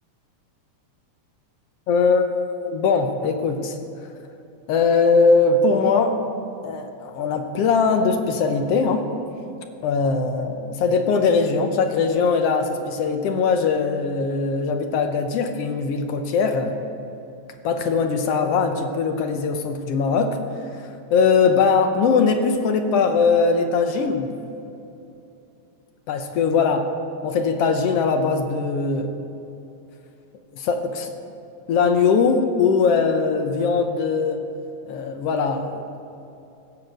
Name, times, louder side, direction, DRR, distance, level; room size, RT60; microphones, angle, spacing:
voice 1, 1.9-2.3 2.6-3.7 4.7-6.2 6.6-9.1 9.8-16.7 17.6-20.4 21.1-24.3 26.1-26.9 27.2-29.1 30.5-31.1 31.7-34.4 34.9-36.0, left 5 dB, 70° left, 6 dB, 1.6 m, -20 dB
15.5 x 6.3 x 7.7 m, 2.8 s
omnidirectional pair, 3.4 m